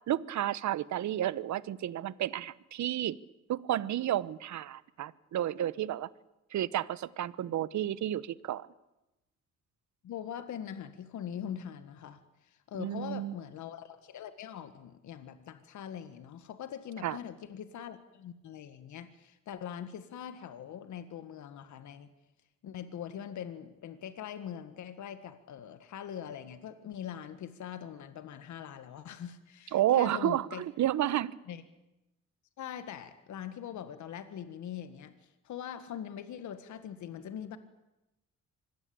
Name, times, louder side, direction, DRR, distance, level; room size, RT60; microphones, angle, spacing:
voice 1, 0.1-3.2 3.5-6.1 6.5-8.7 12.8-13.3 17.0-17.2 29.7-31.3, right 12 dB, 70° right, 18 dB, 1.0 m, -31 dB
voice 2, 10.0-22.1 22.6-30.6 31.5-31.6 32.6-37.6, left 9 dB, 70° left, 10 dB, 1.7 m, -42 dB
25.5 x 20.0 x 8.7 m, 0.96 s
cardioid pair, 90°, 30 cm